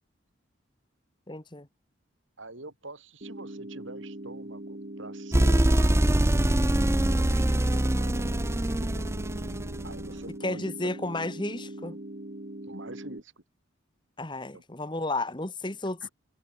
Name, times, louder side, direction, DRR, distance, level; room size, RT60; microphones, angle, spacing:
voice 1, 1.3-1.7 10.4-12.0 14.2-16.1, left 2 dB, 25° left, 1.5 m, -32 dB
voice 2, 2.4-6.0 7.0-9.1 9.8-10.9 12.6-13.3 14.5-14.6 16.0-16.1, right 2 dB, 75° right, 6.2 m, -45 dB
sound 1, 3.2-13.2, right 1 dB, 45° right, 1.5 m, -41 dB
sound 2, 5.3-10.1, right 1 dB, 15° right, 0.6 m, -24 dB
head